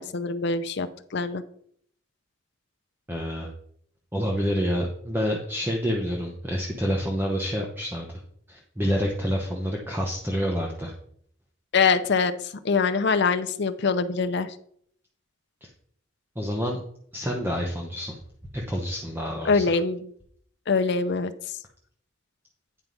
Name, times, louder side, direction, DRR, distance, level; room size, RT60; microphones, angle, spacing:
voice 1, 0.0-1.4 11.7-14.6 19.4-20.1 20.7-21.6, left 4 dB, 60° left, 10 dB, 0.6 m, -24 dB
voice 2, 3.1-3.5 4.1-8.2 8.5-10.9 15.6-15.7 16.3-16.8 17.1-18.2 18.5-19.8, equal, 10° right, 0 dB, 0.9 m, -28 dB
9.4 x 4.5 x 5.2 m, 0.64 s
head